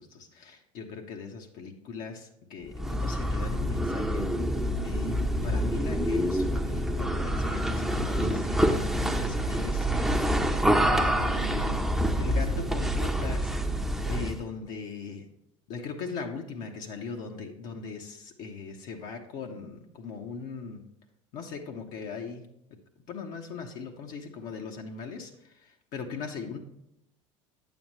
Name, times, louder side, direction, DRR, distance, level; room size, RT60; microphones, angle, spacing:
voice 1, 0.0-4.3 4.8-9.9 10.7-11.9 12.2-13.5 14.0-15.2 15.7-20.8 21.3-22.5 23.1-26.6, left 5 dB, 55° left, 2 dB, 1.0 m, -39 dB
sound 1, 2.7-14.4, equal, ahead, 0.7 m, -27 dB
8.6 x 7.1 x 3.1 m, 0.80 s
hypercardioid pair, 75°, 17 cm